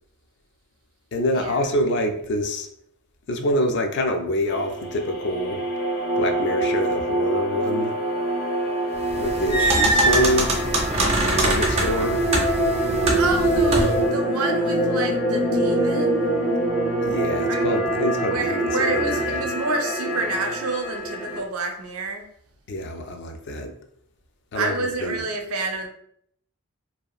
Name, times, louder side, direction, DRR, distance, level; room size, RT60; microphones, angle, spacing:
voice 1, 1.1-2.7 3.3-5.7 6.2-7.9 9.2-10.6 11.2-12.3 17.0-19.5 22.7-23.7 24.5-25.2, equal, 50° left, 5 dB, 0.3 m, -26 dB
sound 1, 4.5-21.4, right 1 dB, 75° left, 0.9 m, -25 dB
sound 2, 9.1-14.1, right 2 dB, 30° right, 0.4 m, -23 dB
voice 2, 13.2-16.3 17.5-17.8 18.3-22.2 24.5-25.9, right 3 dB, 80° right, 4 dB, 0.5 m, -28 dB
2.8 x 2.4 x 2.3 m, 0.69 s
head